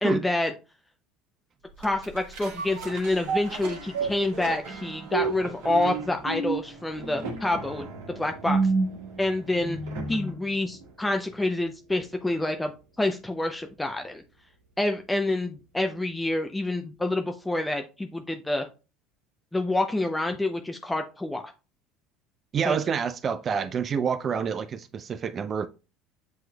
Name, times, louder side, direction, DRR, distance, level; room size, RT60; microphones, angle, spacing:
voice 1, 0.0-0.5 1.8-7.8 8.2-8.6 9.2-9.8 10.1-12.7 13.0-14.2 14.8-18.7 19.5-21.4 22.7-22.8, left 2 dB, 10° left, 0.5 m, -27 dB
sound 1, 1.8-10.4 10.8-10.9, right 4 dB, 70° right, 1.5 m, -31 dB
voice 2, 22.5-25.7, right 7 dB, 40° right, 0.4 m, -28 dB
7.8 x 3.0 x 2.2 m
hypercardioid pair, 70°, 0 cm